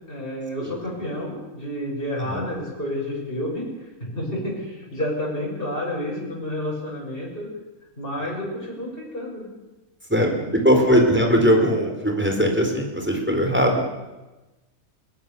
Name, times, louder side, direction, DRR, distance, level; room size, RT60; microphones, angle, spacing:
voice 1, 0.1-3.7 4.0-7.5 8.0-9.5 10.5-10.6, left 1 dB, 35° left, -3 dB, 7.2 m, -30 dB
voice 2, 10.1-13.8, equal, 5° right, 2 dB, 4.3 m, -20 dB
21.0 x 21.0 x 7.0 m, 1.1 s
omnidirectional pair, 1.6 m